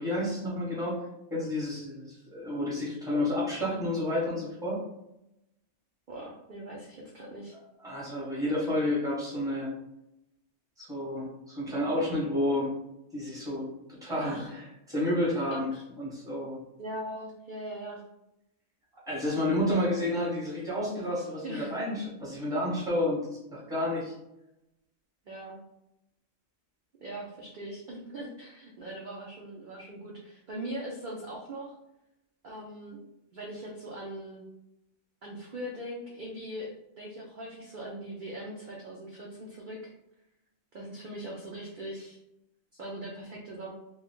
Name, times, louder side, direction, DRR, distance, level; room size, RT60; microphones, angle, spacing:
voice 1, 0.0-4.8 7.8-9.7 10.8-12.7 13.1-15.7 16.0-16.6 19.1-23.2 23.5-24.1, left 1 dB, 5° right, -6 dB, 0.9 m, -30 dB
voice 2, 6.1-7.5 14.2-14.5 15.5-15.9 16.8-18.0 19.3-19.5 21.4-21.8 25.3-25.6 27.0-31.7 32.4-33.0 33.3-34.4 35.2-36.7 37.0-39.9 40.7-42.2 42.8-43.7, right 1 dB, 55° right, -3 dB, 0.5 m, -40 dB
2.7 x 2.2 x 3.5 m, 0.86 s
omnidirectional pair, 1.3 m